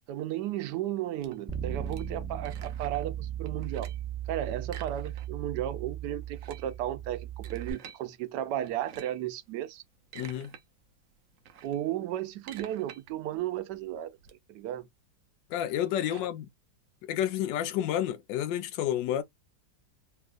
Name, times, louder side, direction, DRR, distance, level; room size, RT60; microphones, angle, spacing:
voice 1, 0.1-3.9 4.3-9.8 11.6-14.2 14.5-14.8 16.1-16.2, right 12 dB, 75° right, 1.1 m, -34 dB
sound 1, 1.2-3.1 3.5-4.1 4.6-5.5 5.8-5.9 6.2-8.0 8.6-9.3 9.8-10.6 11.0-14.3, right 9 dB, 90° right, 0.7 m, -50 dB
Bass guitar, 1.5-7.7, right 10 dB, 5° right, 0.8 m, -37 dB
voice 2, 10.1-10.5 15.5-16.5 17.0-19.2, left 11 dB, 85° left, 1.2 m, -30 dB
3.0 x 2.7 x 2.4 m
omnidirectional pair, 1.9 m